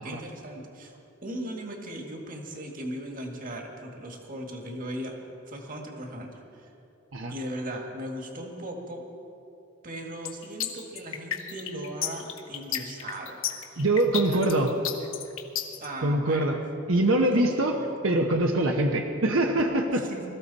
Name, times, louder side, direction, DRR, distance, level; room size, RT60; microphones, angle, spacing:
voice 1, 0.0-5.2 5.5-6.7 7.3-9.0 9.8-13.8 14.1-14.6 15.8-16.5 17.3-17.9 20.1-20.2, right 1 dB, 40° right, 2 dB, 1.9 m, -38 dB
sound 1, 10.3-15.9, left 10 dB, 75° left, 1.3 m, -32 dB
voice 2, 13.8-14.7 16.0-16.6 16.9-17.8 18.0-20.1, right 1 dB, 75° right, 3 dB, 1.0 m, -24 dB
21.5 x 14.5 x 4.2 m, 2.7 s
head